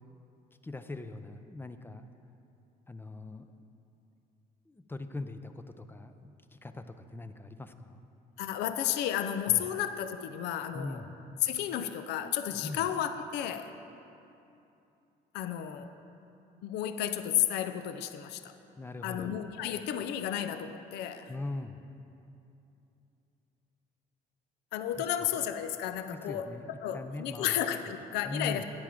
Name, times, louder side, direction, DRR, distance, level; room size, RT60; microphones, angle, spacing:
voice 1, 0.6-2.1 2.9-3.5 4.7-8.0 9.5-9.6 10.7-11.1 12.6-12.8 18.8-19.4 21.3-21.8 25.0-25.1 26.1-26.7 26.9-27.6 28.2-28.6, left 2 dB, 15° left, 9 dB, 0.4 m, -41 dB
voice 2, 8.4-11.0 11.4-13.7 15.3-15.9 16.6-18.5 19.0-21.3 24.7-26.5 26.8-28.6, left 10 dB, 85° left, 10 dB, 0.5 m, -32 dB
9.4 x 8.8 x 4.9 m, 2.8 s
cardioid pair, 110°, 17 cm